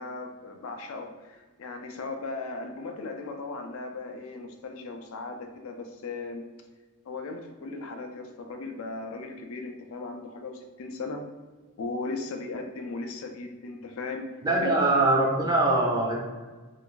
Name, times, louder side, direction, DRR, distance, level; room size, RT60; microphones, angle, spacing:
voice 1, 0.0-6.4 7.1-11.2 11.8-14.3 14.6-15.0, left 3 dB, 70° left, 5 dB, 0.4 m, -37 dB
voice 2, 14.4-16.2, right 2 dB, 15° right, -2 dB, 0.3 m, -22 dB
2.5 x 2.3 x 3.7 m, 1.3 s
head